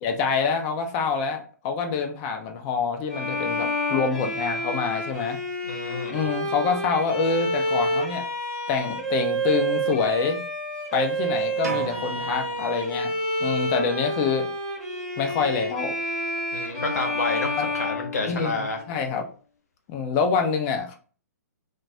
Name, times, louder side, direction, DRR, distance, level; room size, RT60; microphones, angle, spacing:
voice 1, 0.0-5.4 6.1-8.2 8.7-10.4 10.9-13.1 13.4-14.5 15.2-15.9 17.6-17.7 18.3-19.2 19.9-21.0, left 5 dB, 25° left, 5 dB, 0.4 m, -26 dB
Bowed string instrument, 3.1-18.8, equal, 5° left, 0.7 m, -29 dB
voice 2, 5.6-6.2 16.5-18.8, left 3 dB, 65° left, 3 dB, 0.8 m, -29 dB
sound 1, 11.6-13.5, right 4 dB, 65° right, 0.6 m, -36 dB
2.2 x 2.2 x 2.6 m, 0.41 s
figure-of-eight pair, 120°, 9 cm